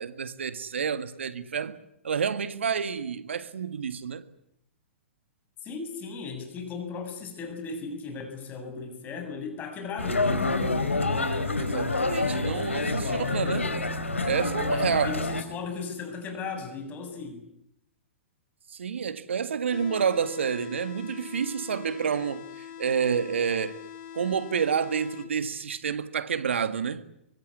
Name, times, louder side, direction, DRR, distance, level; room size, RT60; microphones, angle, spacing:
voice 1, 0.0-1.8 2.0-4.2 11.6-13.7 14.2-15.1 18.7-23.8 24.1-27.0, right 7 dB, 70° right, 1.8 m, -29 dB
voice 2, 5.6-10.4 13.0-13.7 14.7-17.4, left 4 dB, 25° left, 7.4 m, -37 dB
sound 1, 10.0-15.4, left 3 dB, 85° left, 3.8 m, -27 dB
sound 2, 19.7-25.7, left 10 dB, 45° left, 4.6 m, -43 dB
24.0 x 24.0 x 9.8 m
figure-of-eight pair, 115°, 7 cm